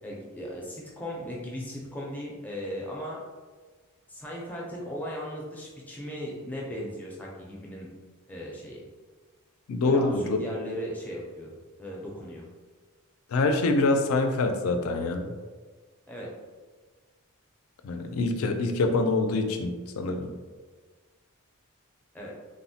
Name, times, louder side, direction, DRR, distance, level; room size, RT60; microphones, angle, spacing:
voice 1, 0.0-3.2 4.1-7.9 8.3-8.8 9.8-11.5 11.8-12.5 16.1-16.3 22.1-22.3, equal, 5° left, -4 dB, 0.5 m, -37 dB
voice 2, 9.7-10.4 13.3-15.3 17.8-20.3, left 3 dB, 70° left, 6 dB, 0.3 m, -25 dB
3.5 x 2.0 x 2.7 m, 1.4 s
head